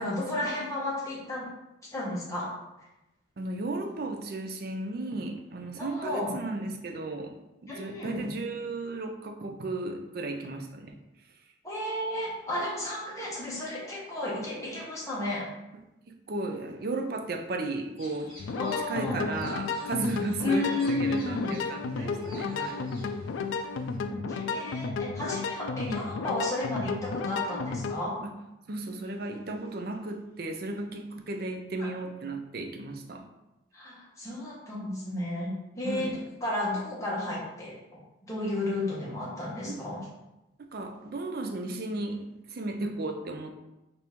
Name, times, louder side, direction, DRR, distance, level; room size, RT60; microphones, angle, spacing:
voice 1, 0.0-1.5 1.8-2.5 5.8-6.4 7.7-8.3 11.6-15.5 18.5-19.4 20.4-21.6 21.9-23.2 24.1-28.2 31.8-31.9 33.7-37.7 38.3-40.1, left 1 dB, 15° left, -5 dB, 1.0 m, -33 dB
voice 2, 3.4-7.3 7.6-11.0 16.1-18.3 18.9-22.9 28.2-28.3 28.7-33.2 35.8-36.1 39.6-39.8 40.7-43.5, right 2 dB, 50° right, 5 dB, 0.4 m, -35 dB
sound 1, 18.0-24.0, equal, 45° left, 1.4 m, -52 dB
sound 2, 18.4-28.0, left 4 dB, 80° left, 0.3 m, -33 dB
4.4 x 2.6 x 3.5 m, 0.96 s
head